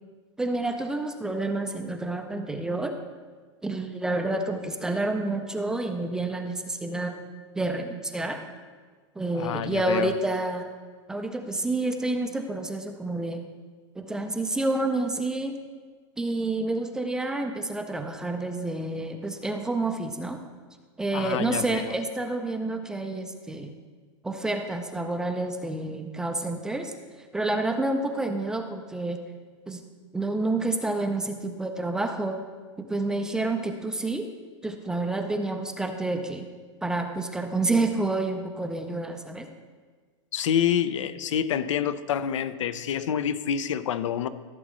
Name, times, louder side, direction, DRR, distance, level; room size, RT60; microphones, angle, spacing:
voice 1, 0.4-3.0 3.6-7.2 7.5-8.4 9.2-10.7 11.1-13.4 14.0-15.6 16.2-20.4 21.0-23.7 24.2-26.9 27.3-29.2 29.7-29.8 30.1-32.4 32.8-34.3 34.6-36.5 36.8-39.5, right 2 dB, 5° right, 5 dB, 0.3 m, -29 dB
voice 2, 9.3-10.1 21.1-21.9 40.3-44.3, left 9 dB, 85° left, 13 dB, 0.6 m, -27 dB
14.5 x 7.5 x 3.1 m, 1.5 s
supercardioid pair, 165°, 15 cm